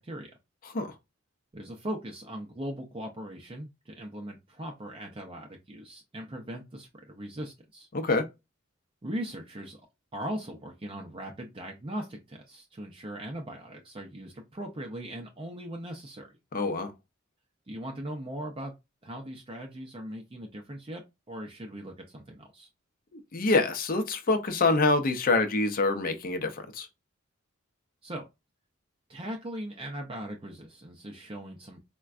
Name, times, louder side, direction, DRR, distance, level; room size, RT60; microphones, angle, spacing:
voice 1, 1.5-7.9 9.0-9.8 10.1-16.3 17.7-18.7 19.0-22.7 28.0-28.3 29.1-31.8, right 1 dB, 25° right, 0.5 m, -39 dB
voice 2, 7.9-8.2 16.5-16.9 23.1-26.9, left 3 dB, 45° left, 0.6 m, -26 dB
4.4 x 2.2 x 2.4 m
head